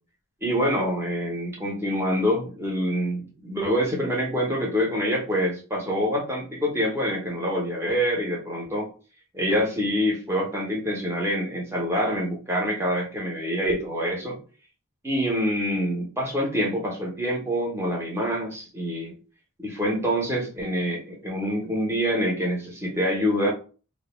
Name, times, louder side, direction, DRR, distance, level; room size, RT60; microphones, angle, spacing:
voice 1, 0.4-8.9 9.3-14.4 15.0-19.2 19.6-23.5, equal, 10° right, -2 dB, 0.6 m, -26 dB
2.2 x 2.1 x 2.9 m, 0.37 s
head